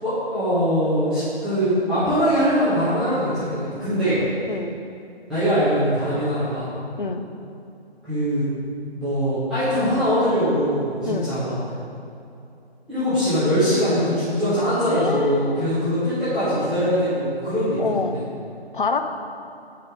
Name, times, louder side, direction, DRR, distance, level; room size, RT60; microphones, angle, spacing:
voice 1, 0.0-4.2 5.3-6.7 8.1-8.4 8.9-11.5 12.9-17.8 18.1-18.2, equal, ahead, -19 dB, 1.5 m, -22 dB
voice 2, 14.9-15.7 17.8-18.2 18.7-19.0, left 4 dB, 55° left, 7 dB, 0.7 m, -26 dB
10.5 x 5.5 x 3.8 m, 2.7 s
figure-of-eight pair, 150°, 32 cm